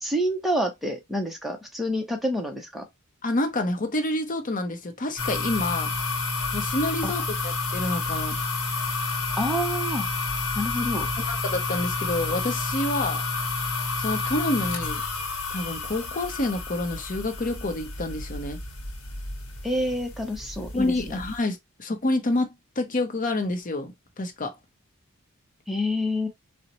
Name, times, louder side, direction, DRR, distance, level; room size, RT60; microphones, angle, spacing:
voice 1, 0.0-2.8 7.0-7.1 9.3-10.1 10.5-11.1 19.6-21.2 25.7-26.3, equal, ahead, 0.6 m, -28 dB
voice 2, 3.2-5.9 6.5-8.4 11.3-13.2 14.0-15.0 15.5-18.6 20.7-22.5 22.8-24.6, left 2 dB, 35° left, 0.7 m, -28 dB
sound 1, 5.2-21.4, left 3 dB, 75° left, 1.0 m, -30 dB
3.9 x 2.1 x 2.9 m
head